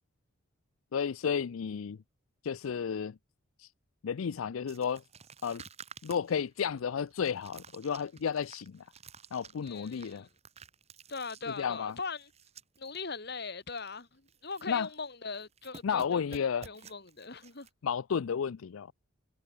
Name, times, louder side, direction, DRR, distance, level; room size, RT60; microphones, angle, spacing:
voice 1, 0.9-2.0 2.4-3.2 3.6-3.7 4.0-5.0 5.4-5.6 6.0-8.8 9.3-10.3 11.5-11.9 14.7-14.9 15.8-16.7 17.8-18.9, left 7 dB, 85° left, 0.4 m, -32 dB
sound 1, 4.7-13.0 13.3-13.4 13.7-14.0 14.3-15.1 15.3-17.7, right 5 dB, 30° right, 2.2 m, -53 dB
voice 2, 9.6-10.3 11.1-12.3 12.8-17.7, left 4 dB, 50° left, 2.4 m, -40 dB
head